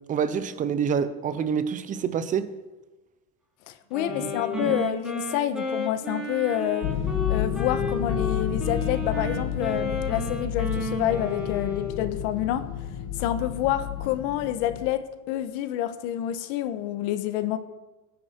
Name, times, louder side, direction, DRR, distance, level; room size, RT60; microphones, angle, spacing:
voice 1, 0.1-2.5 4.1-4.8, right 7 dB, 20° right, 0.8 m, -27 dB
voice 2, 3.7-6.9 7.3-12.7 13.2-17.6, left 12 dB, 65° left, 1.4 m, -28 dB
Wind instrument woodwind instrument, 3.9-12.1, left 1 dB, ahead, 3.0 m, -32 dB
sound 1, 6.8-14.9, left 10 dB, 40° left, 1.5 m, -31 dB
24.5 x 10.0 x 4.6 m
cardioid pair, 175°, 36 cm